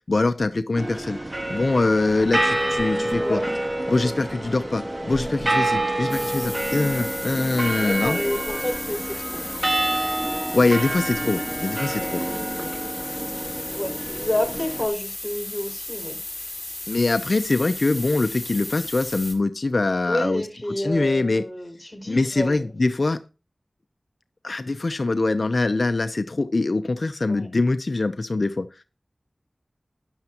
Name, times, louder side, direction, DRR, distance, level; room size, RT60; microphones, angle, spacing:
voice 1, 0.1-1.2 1.5-3.4 3.9-8.2 10.5-12.2 16.9-20.4 20.8-21.4 22.1-23.2 24.4-28.7, left 3 dB, 65° left, 0.7 m, -23 dB
sound 1, 0.8-14.9, right 1 dB, 30° right, 1.6 m, -28 dB
voice 2, 3.2-3.5 3.9-4.1 5.0-5.4 7.7-9.4 11.9-12.7 13.4-16.2 20.1-22.7 27.3-27.5, left 1 dB, 10° left, 5.7 m, -30 dB
sound 2, 6.1-19.3, left 1 dB, 25° left, 4.8 m, -35 dB
13.0 x 11.0 x 3.0 m
wide cardioid pair, 45°, 0 cm